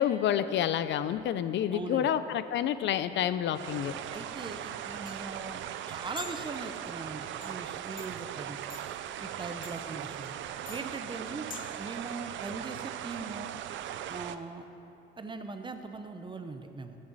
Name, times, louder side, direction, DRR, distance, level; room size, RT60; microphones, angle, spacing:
voice 1, 0.0-4.0, left 10 dB, 70° left, 13 dB, 0.4 m, -28 dB
voice 2, 1.7-2.1 4.1-5.6 5.9-8.6 9.2-10.3 10.7-11.5 11.8-13.5 14.1-14.6 15.2-17.0, right 3 dB, 25° right, 7 dB, 0.7 m, -40 dB
sound 1, 3.5-14.4, right 10 dB, 70° right, 0.4 m, -39 dB
sound 2, 4.5-11.9, left 5 dB, 45° left, 0.8 m, -50 dB
14.0 x 6.5 x 4.0 m, 2.8 s
cardioid pair, 90°, 20 cm